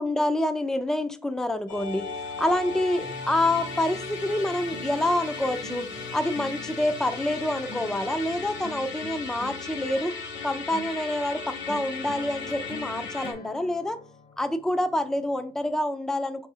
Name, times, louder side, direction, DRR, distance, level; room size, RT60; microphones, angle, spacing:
voice 1, 0.0-2.1 2.4-5.9 6.1-10.2 10.4-14.0 14.4-16.5, left 1 dB, 5° left, 0.4 m, -27 dB
Musical instrument, 1.7-13.3, left 4 dB, 70° left, 1.0 m, -36 dB
sound 1, 3.0-15.8, left 1 dB, 50° left, 0.8 m, -44 dB
3.9 x 3.7 x 2.7 m
cardioid pair, 90°, 20 cm